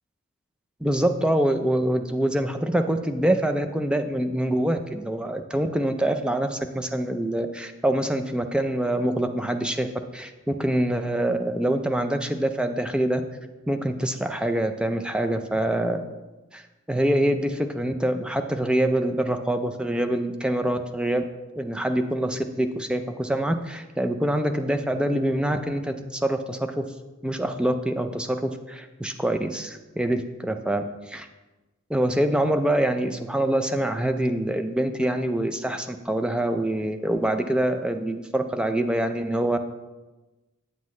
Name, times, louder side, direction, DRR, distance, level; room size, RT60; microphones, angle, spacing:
voice 1, 0.8-13.2 13.7-16.1 16.5-21.2 21.6-26.8 27.2-31.3 31.9-39.6, right 1 dB, 5° right, 7 dB, 0.4 m, -25 dB
8.1 x 7.5 x 3.1 m, 1.1 s
head